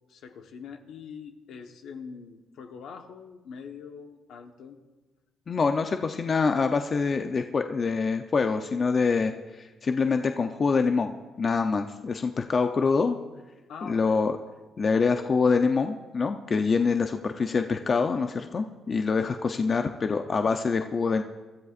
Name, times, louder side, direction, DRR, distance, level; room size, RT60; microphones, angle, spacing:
voice 1, 0.1-4.8 13.7-14.2, left 6 dB, 75° left, 5 dB, 1.2 m, -43 dB
voice 2, 5.5-13.2 13.8-14.4 14.8-21.2, left 4 dB, 40° left, 6 dB, 0.6 m, -25 dB
25.0 x 13.5 x 2.5 m, 1.2 s
cardioid pair, 90°, 0 cm